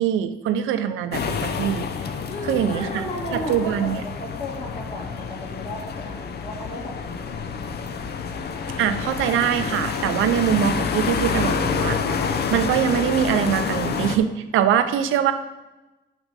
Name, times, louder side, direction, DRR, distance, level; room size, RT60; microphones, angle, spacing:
voice 1, 0.0-1.9 2.5-3.0 3.3-4.0 8.8-12.0 12.5-15.3, right 10 dB, 85° right, 9 dB, 0.7 m, -23 dB
sound 1, 1.1-14.2, left 6 dB, 55° left, 0.7 m, -28 dB
voice 2, 2.3-7.2, left 1 dB, 30° left, -3 dB, 2.7 m, -34 dB
sound 2, 7.6-12.8, right 1 dB, 15° right, 1.4 m, -43 dB
9.0 x 6.0 x 4.1 m, 1.1 s
cardioid pair, 90°, 20 cm